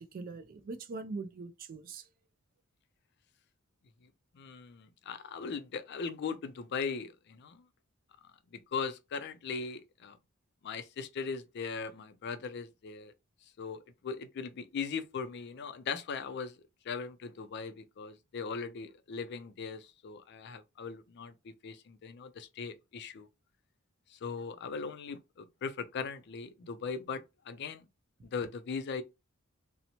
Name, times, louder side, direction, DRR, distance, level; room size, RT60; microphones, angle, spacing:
voice 1, 0.0-2.1, right 3 dB, 45° right, 0.3 m, -42 dB
voice 2, 4.3-7.6 8.5-10.2 10.6-13.1 13.6-16.6 16.8-23.3 24.1-27.9 28.2-29.0, left 5 dB, 50° left, 0.4 m, -39 dB
2.8 x 2.0 x 2.7 m
head